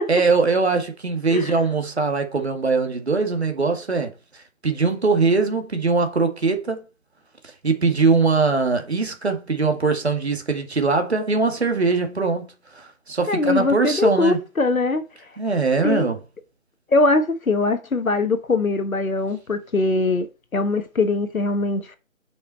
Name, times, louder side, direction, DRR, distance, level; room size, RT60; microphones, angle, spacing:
voice 1, 0.0-6.8 7.4-14.4 15.4-16.2, right 4 dB, 50° right, 1.9 m, -21 dB
voice 2, 13.3-15.0 15.8-16.1 16.9-20.3 20.5-22.0, left 3 dB, 85° left, 1.5 m, -21 dB
6.5 x 5.8 x 4.3 m
figure-of-eight pair, 175°, 41 cm